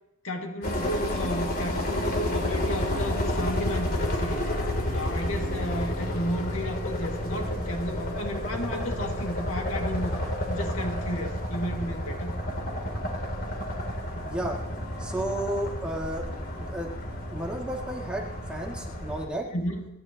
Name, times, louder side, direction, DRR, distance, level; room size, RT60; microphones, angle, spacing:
voice 1, 0.2-4.4 4.9-10.2 10.5-12.4 19.5-19.9, equal, 70° left, 1 dB, 2.3 m, -33 dB
sound 1, 0.6-19.2, left 1 dB, 45° left, 3.3 m, -31 dB
voice 2, 14.2-14.6 15.0-16.3 16.6-16.9 17.3-19.5, right 1 dB, 5° right, -3 dB, 2.4 m, -32 dB
30.0 x 12.0 x 3.0 m, 0.95 s
head